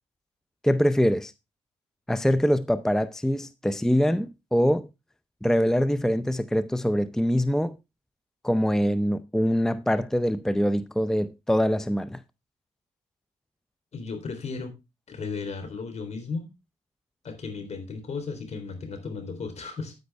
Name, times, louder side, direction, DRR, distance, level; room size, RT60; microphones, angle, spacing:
voice 1, 0.6-1.3 2.1-4.9 5.4-7.8 8.4-12.2, equal, 5° left, 0.6 m, -24 dB
voice 2, 13.9-14.7 15.1-16.5 17.2-19.9, left 4 dB, 55° left, 3.5 m, -35 dB
9.5 x 9.3 x 3.4 m
supercardioid pair, 55°, 13 cm